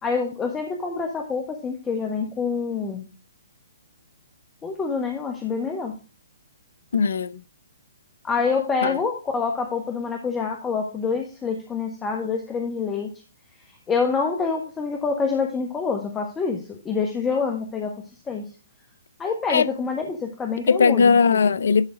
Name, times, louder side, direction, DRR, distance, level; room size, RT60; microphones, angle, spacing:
voice 1, 0.0-3.1 4.6-6.0 8.2-13.1 13.9-18.0 18.3-18.4 19.2-21.4, left 5 dB, 15° left, 1.2 m, -26 dB
voice 2, 6.9-7.4 8.8-9.0 19.5-19.7 20.7-21.9, left 5 dB, 70° left, 0.5 m, -18 dB
11.5 x 3.8 x 4.9 m
hypercardioid pair, 135°, 0 cm